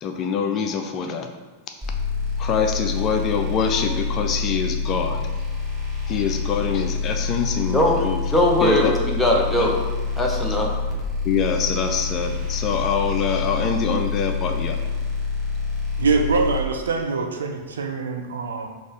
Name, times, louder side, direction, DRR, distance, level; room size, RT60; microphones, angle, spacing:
voice 1, 0.0-1.3 2.4-5.2 6.1-8.2 8.6-8.9 9.6-9.7 11.2-14.8, left 6 dB, 35° left, 4 dB, 0.4 m, -24 dB
sound 1, 1.8-16.6, left 5 dB, 15° right, 1.1 m, -27 dB
voice 2, 8.3-9.7 10.2-10.7, equal, 5° left, -2 dB, 0.8 m, -20 dB
voice 3, 16.0-18.7, right 4 dB, 70° right, 4 dB, 0.4 m, -24 dB
4.1 x 2.5 x 4.6 m, 1.3 s
figure-of-eight pair, 90°, 0 cm